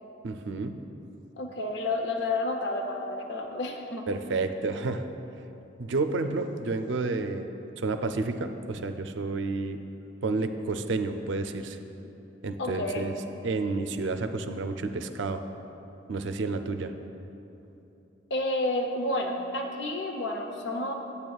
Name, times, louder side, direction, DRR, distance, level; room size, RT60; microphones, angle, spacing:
voice 1, 0.2-0.8 4.1-5.1 5.8-7.5 7.8-9.8 10.2-11.8 12.4-13.1 13.4-15.4 16.1-16.9, right 3 dB, 75° right, 7 dB, 0.4 m, -30 dB
voice 2, 1.4-4.1 12.6-13.1 18.3-20.9, left 2 dB, 70° left, 4 dB, 0.6 m, -30 dB
10.5 x 8.4 x 2.3 m, 3.0 s
head